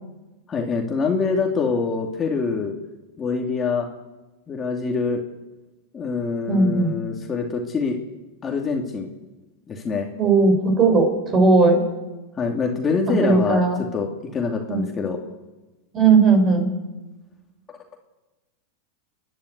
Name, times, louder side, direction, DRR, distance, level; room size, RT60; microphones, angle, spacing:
voice 1, 0.5-2.7 3.2-3.9 4.5-5.2 5.9-8.0 8.4-9.1 9.7-10.1 12.4-15.2, left 4 dB, 25° left, 1 dB, 2.5 m, -25 dB
voice 2, 6.5-6.9 10.2-11.8 13.1-13.8 14.7-14.8 15.9-16.7, right 4 dB, 30° right, 4 dB, 6.5 m, -17 dB
29.5 x 11.0 x 8.2 m, 1.1 s
hypercardioid pair, 115°, 0 cm